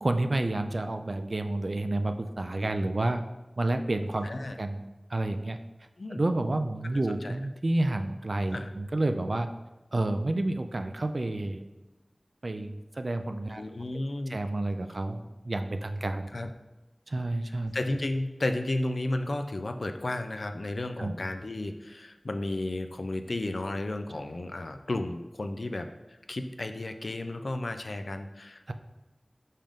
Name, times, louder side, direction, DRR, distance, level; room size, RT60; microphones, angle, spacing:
voice 1, 0.0-3.2 3.6-4.3 4.6-4.8 5.1-5.6 6.2-9.5 9.9-11.6 12.4-13.6 14.3-16.3 17.1-17.7 21.0-21.1 28.7-28.8, right 2 dB, 65° right, 7 dB, 0.4 m, -29 dB
voice 2, 4.2-4.6 6.0-6.2 7.2-7.4 8.5-8.7 13.5-14.4 16.3-16.5 17.7-28.7, left 2 dB, 80° left, 7 dB, 0.4 m, -33 dB
5.5 x 5.1 x 3.6 m, 1.1 s
wide cardioid pair, 45°, 0 cm